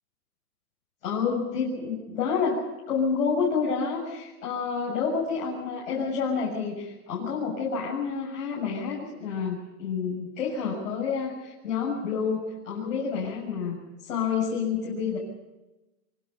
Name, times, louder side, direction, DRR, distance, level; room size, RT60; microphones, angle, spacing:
voice 1, 1.0-15.2, left 5 dB, 55° left, -5 dB, 7.3 m, -29 dB
24.5 x 24.5 x 5.6 m, 1.0 s
hypercardioid pair, 175°, 46 cm